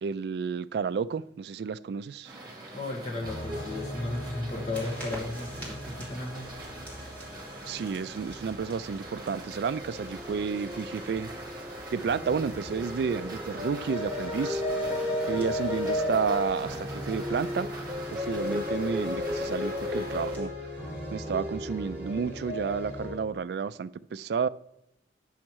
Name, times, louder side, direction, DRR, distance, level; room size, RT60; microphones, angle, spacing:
voice 1, 0.0-2.3 7.7-11.3 11.9-14.6 15.2-17.7 18.1-20.5 21.1-24.5, right 6 dB, 60° right, 0.3 m, -31 dB
sound 1, 2.2-20.4, right 2 dB, 25° right, 1.8 m, -44 dB
voice 2, 2.7-6.5, left 2 dB, 35° left, 1.3 m, -35 dB
sound 2, 3.2-23.2, left 1 dB, 5° right, 2.8 m, -35 dB
sound 3, 4.7-20.5, equal, 10° left, 2.3 m, -49 dB
8.5 x 6.3 x 4.6 m
head